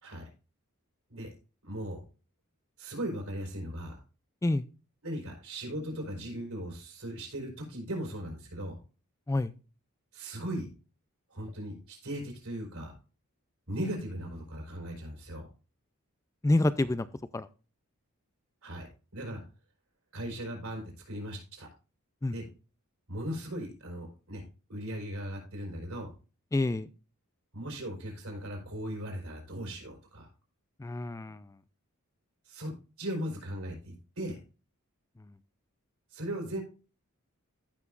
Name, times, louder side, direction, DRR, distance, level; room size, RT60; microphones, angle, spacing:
voice 1, 1.6-2.0 2.8-4.0 5.0-8.8 10.1-10.7 11.3-12.9 13.7-15.5 18.6-18.9 19.1-19.4 20.1-21.7 22.3-22.5 23.1-24.4 24.7-26.1 27.5-30.3 32.5-32.7 33.0-34.4 36.1-36.6, equal, 70° right, 1 dB, 4.2 m, -38 dB
voice 2, 16.4-17.1 17.3-17.5 22.2-22.3 26.5-26.9 30.8-31.4, left 2 dB, 15° left, 14 dB, 0.3 m, -27 dB
15.0 x 5.9 x 2.4 m, 0.33 s
head